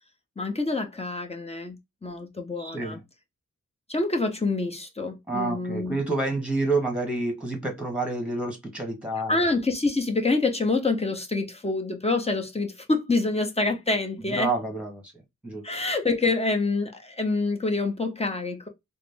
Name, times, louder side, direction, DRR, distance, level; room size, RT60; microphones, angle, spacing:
voice 1, 0.4-3.0 3.9-6.0 9.3-14.5 15.6-18.7, left 3 dB, 20° left, 0.9 m, -26 dB
voice 2, 2.6-3.0 5.3-9.4 14.2-15.0 15.4-15.6, right 2 dB, 5° right, 1.5 m, -28 dB
3.7 x 2.0 x 3.4 m
wide cardioid pair, 85°, 29 cm